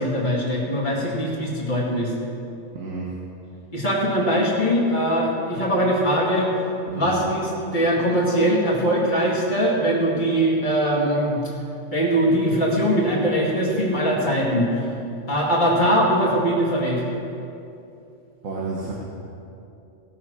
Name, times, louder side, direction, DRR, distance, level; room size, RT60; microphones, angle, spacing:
voice 1, 0.0-2.1 3.7-6.5 6.9-11.4 11.9-14.8 15.3-17.0, equal, 35° left, -4 dB, 2.5 m, -21 dB
voice 2, 2.7-3.1 6.9-7.1 18.4-18.9, right 3 dB, 85° right, -4 dB, 1.7 m, -30 dB
17.5 x 6.5 x 6.3 m, 2.7 s
omnidirectional pair, 1.4 m